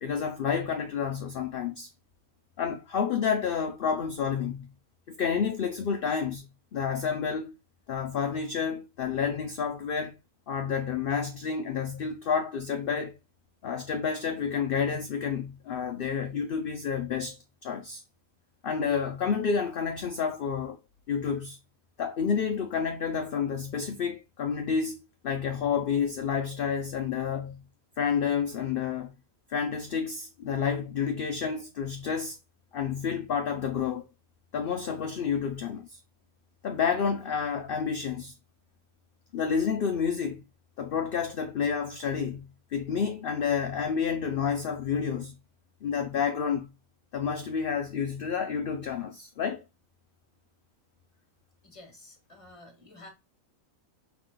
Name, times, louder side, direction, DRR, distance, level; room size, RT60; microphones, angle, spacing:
voice 1, 0.0-1.9 2.6-4.7 5.2-7.5 7.9-10.2 10.5-13.2 13.6-18.0 18.6-20.8 21.1-21.6 22.0-25.0 25.2-27.6 28.0-29.1 29.5-32.4 32.7-34.0 34.5-36.0 36.6-38.3 39.3-40.4 40.8-45.4 45.8-46.7 47.1-49.6, left 6 dB, 65° left, 0.5 m, -29 dB
voice 2, 51.6-53.1, left 2 dB, 20° left, 1.5 m, -50 dB
5.8 x 2.2 x 3.7 m
omnidirectional pair, 1.5 m